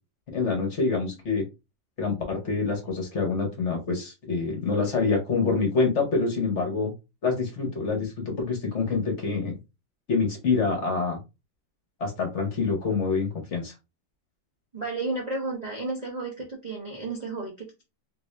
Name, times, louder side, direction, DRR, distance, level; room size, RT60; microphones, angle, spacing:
voice 1, 0.3-1.4 2.0-6.9 7.2-9.5 10.1-11.2 12.0-13.7, left 4 dB, 45° left, 2 dB, 1.0 m, -26 dB
voice 2, 14.7-17.8, right 3 dB, 75° right, -3 dB, 0.3 m, -32 dB
3.1 x 2.6 x 3.2 m, 0.25 s
omnidirectional pair, 2.1 m